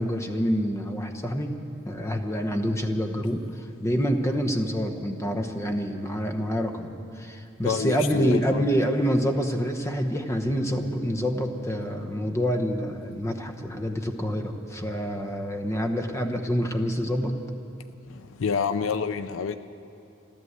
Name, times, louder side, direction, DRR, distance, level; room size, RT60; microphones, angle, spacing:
voice 1, 0.0-1.6 1.8-17.4, equal, 15° left, 5 dB, 0.9 m, -27 dB
voice 2, 7.6-8.7 18.1-19.6, left 6 dB, 70° left, 12 dB, 0.5 m, -28 dB
sound 1, 10.5-16.7, right 5 dB, 85° right, 1.2 m, -48 dB
14.0 x 13.0 x 8.0 m, 2.8 s
head